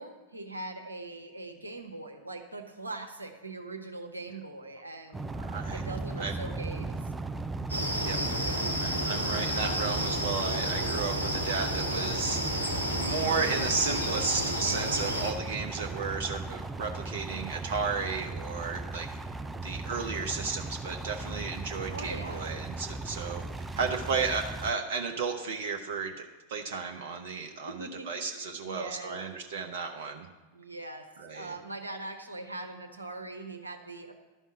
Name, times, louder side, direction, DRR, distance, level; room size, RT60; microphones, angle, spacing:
voice 1, 0.0-5.4 5.7-7.1 8.4-8.7 21.9-22.4 27.6-29.2 30.5-31.1 31.3-34.1, right 2 dB, 80° right, 5 dB, 1.0 m, -41 dB
sound 1, 5.1-24.7, right 3 dB, 10° right, 0.4 m, -37 dB
voice 2, 5.4-5.8 6.2-6.3 8.0-8.2 8.8-12.4 12.9-19.1 19.6-30.3 31.2-31.5, right 5 dB, 55° right, 4 dB, 0.7 m, -33 dB
sound 2, 7.7-15.3, equal, 90° left, 1.2 m, -31 dB
11.5 x 5.5 x 7.2 m, 1.2 s
figure-of-eight pair, 90°, 0 cm